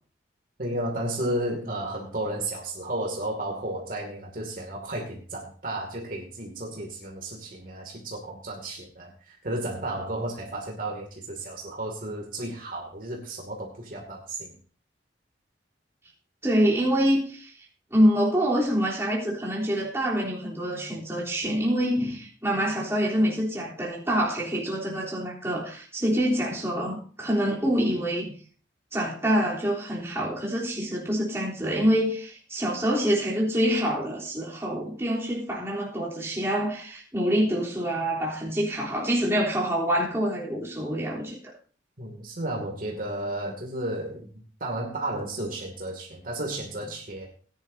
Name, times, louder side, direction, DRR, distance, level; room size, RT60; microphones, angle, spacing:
voice 1, 0.6-14.5 42.0-44.3 44.6-47.3, right 1 dB, 50° right, 2.4 m, -33 dB
voice 2, 16.4-17.5 17.9-28.3 28.9-41.4, equal, 15° right, 3.4 m, -26 dB
18.5 x 10.5 x 2.7 m
head